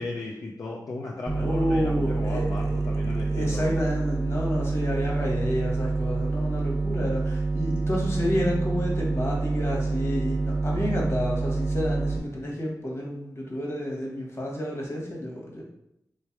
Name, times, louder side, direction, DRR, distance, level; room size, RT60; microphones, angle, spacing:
voice 1, 0.0-3.8, left 2 dB, 60° left, -2 dB, 0.5 m, -35 dB
sound 1, 1.3-12.2, right 3 dB, 15° right, 0.5 m, -27 dB
voice 2, 1.4-2.8 3.2-15.6, equal, 40° left, -3 dB, 1.3 m, -30 dB
3.3 x 3.2 x 4.5 m, 0.81 s
wide cardioid pair, 95°, 7 cm